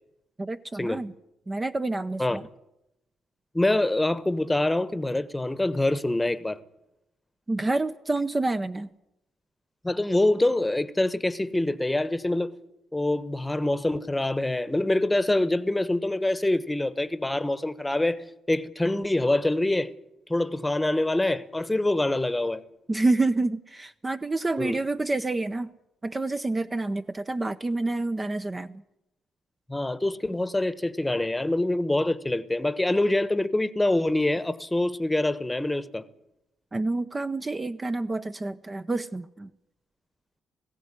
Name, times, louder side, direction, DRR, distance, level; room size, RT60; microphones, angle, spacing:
voice 1, 0.4-1.1 1.5-2.4 7.5-8.9 22.9-25.7 26.0-28.8 36.7-39.5, right 2 dB, 20° right, 0.7 m, -28 dB
voice 2, 3.5-6.6 9.8-12.5 12.9-19.9 20.3-22.6 24.6-24.8 29.7-36.0, left 1 dB, 10° left, 1.1 m, -25 dB
19.5 x 16.0 x 9.8 m
cardioid pair, 90°, 0 cm